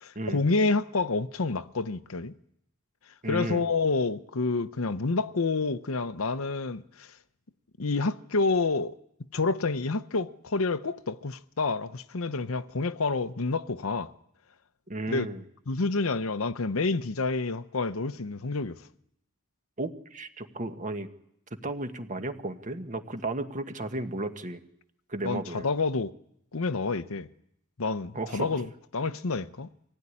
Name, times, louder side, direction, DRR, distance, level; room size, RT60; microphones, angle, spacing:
voice 1, 0.0-2.3 3.3-7.1 7.8-9.0 9.3-14.1 15.1-15.3 15.7-18.8 25.2-26.1 26.5-27.3 27.8-29.7, left 3 dB, 75° left, 0.9 m, -28 dB
voice 2, 3.2-3.7 14.9-15.4 19.8-21.1 21.6-24.6 25.1-25.7 28.1-28.6, right 2 dB, 40° right, 1.5 m, -34 dB
25.0 x 16.5 x 9.9 m
head